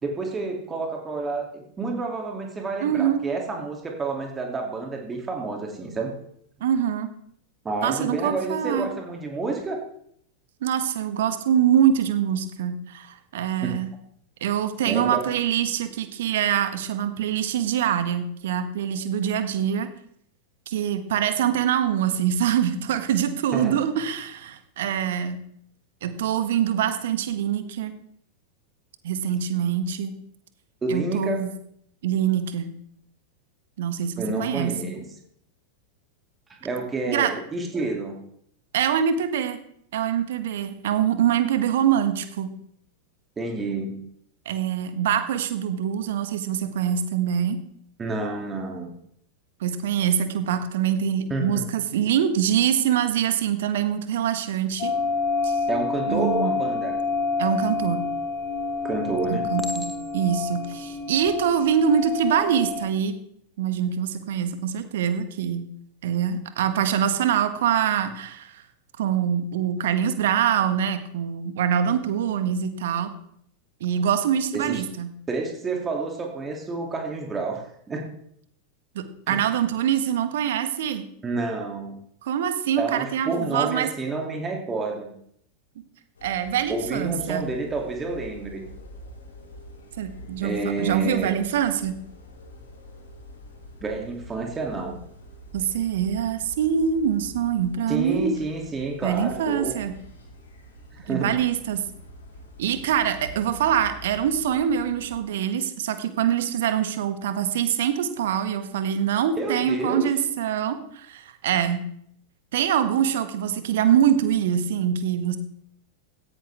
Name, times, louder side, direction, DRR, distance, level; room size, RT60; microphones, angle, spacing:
voice 1, 0.0-6.1 7.6-9.8 13.6-13.8 14.8-15.3 23.5-23.8 30.8-31.5 34.2-35.0 36.6-38.1 43.4-44.0 48.0-48.9 51.3-51.6 55.7-56.9 58.8-59.4 74.5-74.8 75.3-78.1 79.3-79.5 81.2-81.9 82.8-85.1 86.7-88.6 90.4-91.4 93.8-95.0 97.9-99.8 101.0-101.3 109.4-110.1, right 3 dB, 15° right, 1 dB, 2.8 m, -29 dB
voice 2, 2.8-3.3 6.6-7.1 7.8-8.9 10.6-13.9 14.4-19.9 20.7-25.4 26.0-27.9 29.0-30.1 30.9-31.5 32.0-32.7 33.8-34.8 37.1-37.3 38.7-39.6 39.9-42.5 44.4-47.6 49.6-54.9 55.4-55.6 56.1-56.5 57.4-58.1 59.3-63.1 63.6-65.7 66.0-68.6 69.0-73.1 73.8-75.1 78.9-81.0 82.2-83.9 86.2-87.5 90.0-91.9 95.5-98.3 99.0-99.9 101.1-101.8 102.6-111.8 112.5-115.4, right 9 dB, 55° right, 10 dB, 1.6 m, -24 dB
sound 1, 54.8-62.9, left 4 dB, 35° left, 3.5 m, -28 dB
Chink clink, 58.1-58.6 59.6-60.4 61.1-61.4, left 1 dB, 5° left, 1.8 m, -38 dB
sound 2, 86.1-105.2, equal, 70° left, 4.4 m, -45 dB
17.0 x 15.5 x 3.6 m, 0.68 s
figure-of-eight pair, 90°, 0 cm